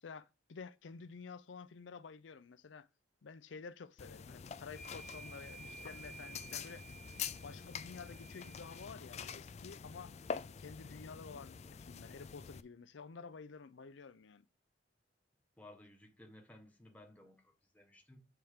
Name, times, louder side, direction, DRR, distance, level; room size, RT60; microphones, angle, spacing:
voice 1, 0.0-2.9 3.2-6.8 7.1-10.1 10.4-14.4, left 5 dB, 85° left, 0.5 m, -51 dB
sound 1, 4.0-12.6, left 6 dB, 35° left, 0.4 m, -46 dB
sound 2, 4.6-8.9, right 4 dB, 40° right, 2.6 m, -54 dB
voice 2, 15.6-18.2, left 1 dB, 10° left, 1.3 m, -58 dB
7.1 x 4.5 x 5.0 m
head